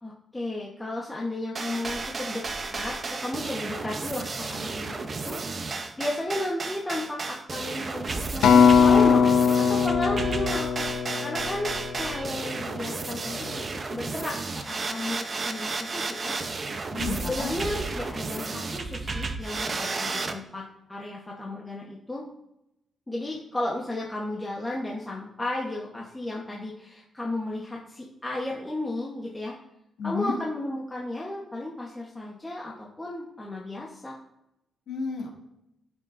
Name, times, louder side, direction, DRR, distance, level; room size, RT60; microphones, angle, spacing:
voice 1, 0.0-2.4 2.7-10.7 11.2-13.5 13.9-14.4 14.7-16.4 17.2-20.6 20.9-22.2 23.1-29.6 30.0-34.2, left 1 dB, 10° left, -4 dB, 1.1 m, -33 dB
sound 1, 1.6-20.4, right 3 dB, 30° right, 0.8 m, -33 dB
Acoustic guitar, 8.4-12.8 13.5-13.6, left 6 dB, 90° left, 0.6 m, -21 dB
voice 2, 16.9-17.5 30.0-30.4 34.9-35.3, left 4 dB, 65° left, -2 dB, 2.4 m, -31 dB
15.5 x 6.0 x 2.6 m, 0.85 s
wide cardioid pair, 150°, 0 cm